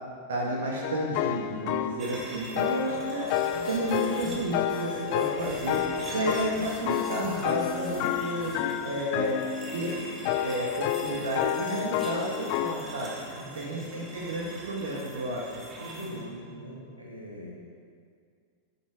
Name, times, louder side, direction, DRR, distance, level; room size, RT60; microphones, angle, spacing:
voice 1, 0.3-3.3 3.7-5.8 6.1-8.5 8.8-9.4 9.7-10.0 10.4-13.1 13.6-15.5, right 1 dB, 65° right, -3 dB, 2.0 m, -31 dB
sound 1, 0.8-2.0 2.6-12.8, left 10 dB, 45° left, 0.5 m, -30 dB
sound 2, 2.0-16.2, right 1 dB, 20° right, 3.1 m, -43 dB
voice 2, 2.6-2.9 13.3-13.9 15.8-17.5, equal, 85° right, -3 dB, 2.6 m, -42 dB
sound 3, 3.3-8.6, left 4 dB, 25° left, 3.8 m, -43 dB
13.5 x 10.5 x 5.1 m, 2.2 s
figure-of-eight pair, 90°, 0 cm